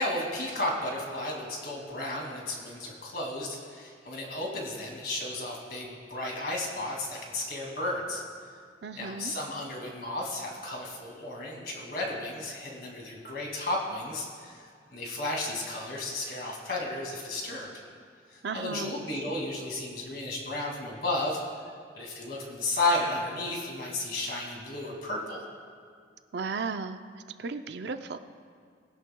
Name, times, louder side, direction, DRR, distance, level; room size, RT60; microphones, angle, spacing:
voice 1, 0.0-8.2 8.9-17.7 18.3-21.4 21.9-25.4, left 2 dB, 50° left, -1 dB, 2.3 m, -33 dB
voice 2, 8.8-9.3 18.4-18.9 26.3-27.0 27.4-28.2, right 4 dB, 60° right, 9 dB, 0.5 m, -34 dB
20.0 x 11.0 x 2.3 m, 2.2 s
head